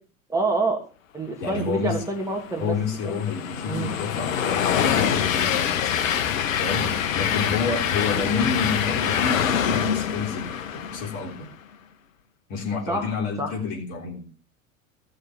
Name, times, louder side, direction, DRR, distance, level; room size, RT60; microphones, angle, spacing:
voice 1, 0.3-0.8 1.1-2.8 3.0-3.2 3.7-3.9 8.2-8.5 12.9-13.1 13.4-13.6, right 2 dB, 10° right, 1 dB, 2.5 m, -27 dB
voice 2, 1.4-2.0 2.6-6.0 6.6-10.5 10.7-11.5 12.5-14.3, left 5 dB, 45° left, 2 dB, 3.7 m, -29 dB
Train, 2.0-11.5, left 8 dB, 70° left, 1.0 m, -25 dB
16.0 x 6.6 x 5.9 m, 0.37 s
figure-of-eight pair, 85°, 41 cm